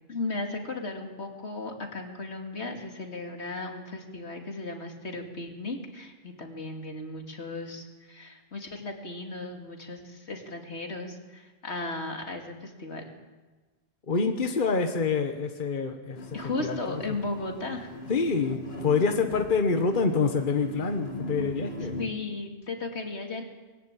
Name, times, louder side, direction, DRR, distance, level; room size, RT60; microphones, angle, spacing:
voice 1, 0.1-13.0 16.3-18.0 22.0-23.4, left 2 dB, 80° left, 3 dB, 2.8 m, -36 dB
voice 2, 14.1-16.3 16.6-16.8 18.1-22.0, left 4 dB, 50° left, 6 dB, 1.4 m, -26 dB
sound 1, 16.2-22.0, equal, 65° left, 2.5 m, -39 dB
22.0 x 14.5 x 8.9 m, 1.3 s
omnidirectional pair, 1.1 m